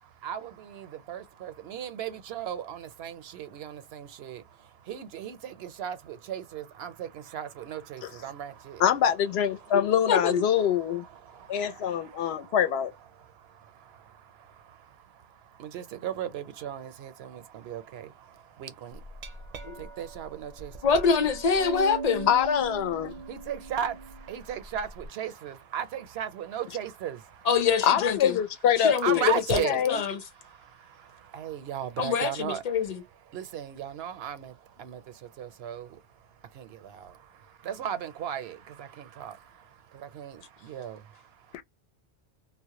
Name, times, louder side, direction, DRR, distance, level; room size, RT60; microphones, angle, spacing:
voice 1, 0.2-8.8 9.6-9.9 10.4-12.7 13.0-21.0 22.9-27.5 29.0-32.9 33.3-41.6, right 9 dB, 80° right, 0.8 m, -37 dB
voice 2, 8.8-11.0 11.5-12.9 22.3-23.1 27.8-29.3 29.6-30.0 41.5-41.6, left 9 dB, 80° left, 0.8 m, -24 dB
voice 3, 10.1-10.4 19.6-19.8 20.8-22.3 27.5-28.4 28.8-29.2 29.5-29.6 29.9-30.2 32.0-33.0, left 6 dB, 45° left, 0.6 m, -25 dB
Glass, 19.0-25.1, right 4 dB, 50° right, 0.5 m, -40 dB
2.1 x 2.0 x 2.8 m
omnidirectional pair, 1.0 m